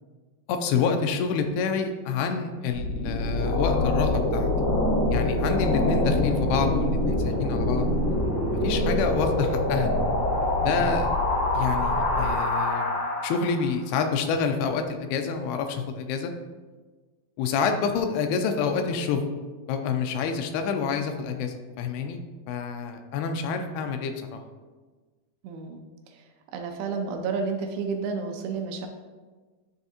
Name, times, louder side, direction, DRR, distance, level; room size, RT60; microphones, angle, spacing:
voice 1, 0.5-4.5 5.1-8.2 8.6-9.9 10.6-11.1 11.5-16.3 17.4-19.2 19.7-22.2 22.5-24.4, left 5 dB, 85° left, 6 dB, 2.5 m, -28 dB
sound 1, 2.7-13.7, left 1 dB, 55° left, 1.2 m, -25 dB
voice 2, 25.4-25.8 26.1-26.2 26.5-28.9, right 5 dB, 80° right, 4 dB, 2.4 m, -31 dB
10.0 x 3.4 x 2.9 m, 1.3 s
omnidirectional pair, 4.6 m